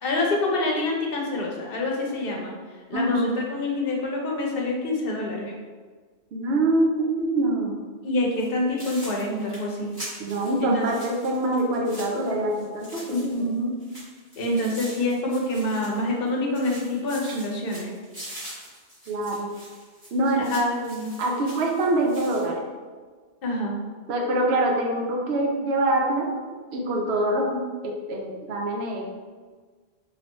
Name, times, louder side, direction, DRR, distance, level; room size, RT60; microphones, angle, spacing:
voice 1, 0.0-2.5 2.9-5.5 8.0-9.9 10.6-11.0 13.1-13.7 14.4-17.9 20.5-21.1 23.4-23.8, left 1 dB, 65° left, -1 dB, 0.8 m, -26 dB
voice 2, 2.9-3.3 6.3-7.8 10.2-13.5 19.1-19.5 20.1-20.4 21.2-22.7 24.1-26.3 26.7-29.1, right 1 dB, 75° right, 0 dB, 0.9 m, -25 dB
sound 1, 8.3-8.5 8.8-13.5 13.8-16.3 16.5-22.5, right 1 dB, 20° right, 1.4 m, -43 dB
3.2 x 2.5 x 3.0 m, 1.4 s
omnidirectional pair, 1.1 m